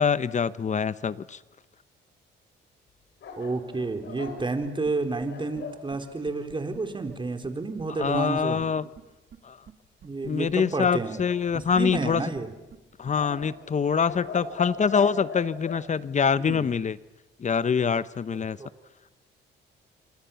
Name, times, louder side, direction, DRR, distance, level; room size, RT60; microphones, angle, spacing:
voice 1, 0.0-1.4 8.0-8.9 9.4-9.6 10.2-12.2 13.0-17.0 17.4-18.6, left 6 dB, 35° left, 16 dB, 0.9 m, -25 dB
sound 1, 3.2-5.8 11.2-12.1 13.1-15.9, left 5 dB, 65° left, 6.5 m, -39 dB
voice 2, 3.4-8.6 10.0-11.2 11.5-12.5 16.4-16.7 18.6-18.7, right 3 dB, 25° right, 6 dB, 3.7 m, -30 dB
sound 2, 4.3-4.9 5.2-5.3 5.6-5.7 5.9-6.0 6.3-6.8 7.1-7.2 7.4-7.5 7.8-8.7 9.0-9.1 9.3-9.4 9.7-9.8 10.0-10.5 10.8-10.9 11.2-11.3 11.5-12.4 12.7-12.8 13.1-13.2 13.4-13.5, right 8 dB, 55° right, 2.4 m, -46 dB
29.5 x 25.5 x 7.1 m, 1.1 s
cardioid pair, 90°, 20 cm